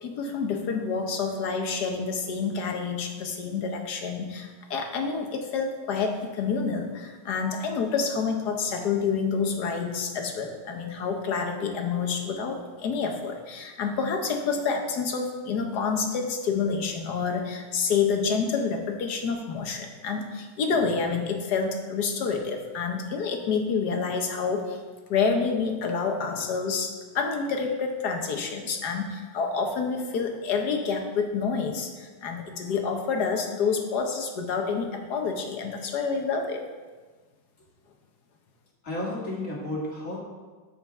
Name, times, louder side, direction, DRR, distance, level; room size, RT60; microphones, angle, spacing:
voice 1, 0.0-24.8 25.1-36.6, left 5 dB, 65° left, 4 dB, 1.5 m, -28 dB
voice 2, 38.8-40.2, left 1 dB, 45° left, -4 dB, 2.5 m, -32 dB
13.0 x 5.8 x 3.6 m, 1.4 s
omnidirectional pair, 1.9 m